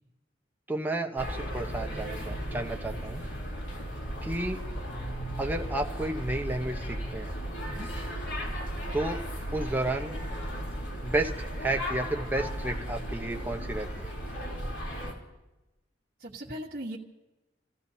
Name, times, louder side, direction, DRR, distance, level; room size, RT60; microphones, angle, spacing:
voice 1, 0.7-3.2 4.2-4.6 5.4-7.3 8.9-9.2 9.5-10.1 11.0-14.1, right 2 dB, 10° right, 3 dB, 1.0 m, -32 dB
sound 1, 1.2-15.1, equal, 90° left, 3.5 m, -35 dB
voice 2, 16.2-17.0, equal, 55° right, -5 dB, 1.3 m, -38 dB
28.5 x 15.0 x 2.8 m, 1.0 s
head